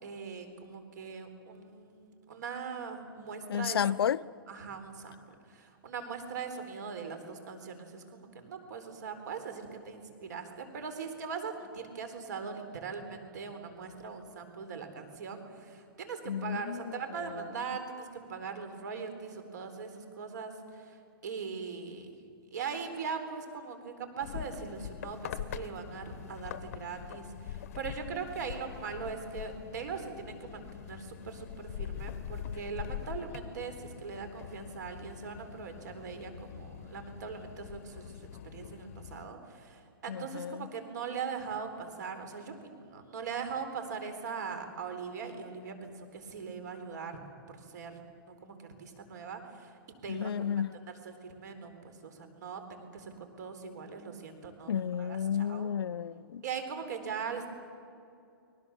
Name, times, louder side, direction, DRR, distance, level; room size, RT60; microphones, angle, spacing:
voice 1, 0.0-3.8 4.5-5.1 5.5-21.0 21.2-22.1 22.5-38.1 38.5-47.2 47.7-48.0 48.4-49.7 50.0-50.3 51.0-55.7 56.4-57.5, right 5 dB, 50° right, 4.0 m, -40 dB
voice 2, 3.5-4.2 16.3-17.5 40.1-40.7 50.1-50.8 54.7-56.4, left 8 dB, 85° left, 0.7 m, -32 dB
sound 1, 24.2-39.2, left 10 dB, 40° left, 1.0 m, -43 dB
30.0 x 22.5 x 7.2 m
hypercardioid pair, 175°, 12 cm